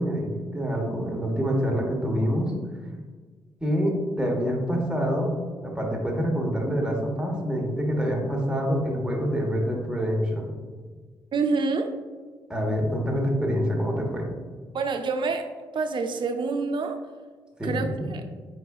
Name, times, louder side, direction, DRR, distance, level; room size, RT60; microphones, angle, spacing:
voice 1, 0.0-2.5 3.6-5.3 5.6-10.5 12.5-14.3 17.6-18.1, equal, 10° right, -1 dB, 1.3 m, -26 dB
voice 2, 11.3-11.9 14.7-17.0 17.6-18.2, right 4 dB, 50° right, 6 dB, 0.5 m, -27 dB
4.6 x 4.5 x 2.4 m, 1.5 s
hypercardioid pair, 45°, 10 cm